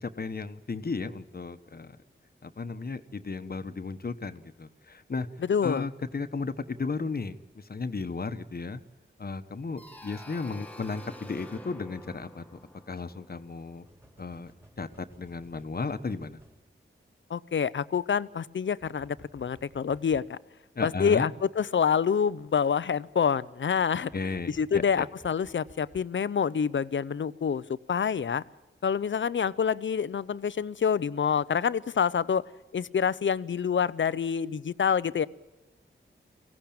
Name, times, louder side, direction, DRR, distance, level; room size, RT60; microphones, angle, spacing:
voice 1, 0.0-2.0 2.4-5.3 5.6-8.8 9.2-12.4 12.9-13.8 14.2-14.5 14.8-16.4 20.7-21.3 24.1-25.0, left 4 dB, 50° left, 10 dB, 1.2 m, -34 dB
voice 2, 5.5-5.9 17.3-20.4 20.8-28.4 28.8-32.4 32.7-35.3, left 7 dB, 65° left, 18 dB, 0.7 m, -27 dB
sound 1, 9.8-14.4, left 1 dB, 5° left, 1.6 m, -49 dB
sound 2, 13.9-16.6 18.8-20.3 24.1-26.1, equal, 10° right, 3.1 m, -55 dB
24.0 x 16.5 x 8.8 m, 1.2 s
wide cardioid pair, 80°, 21 cm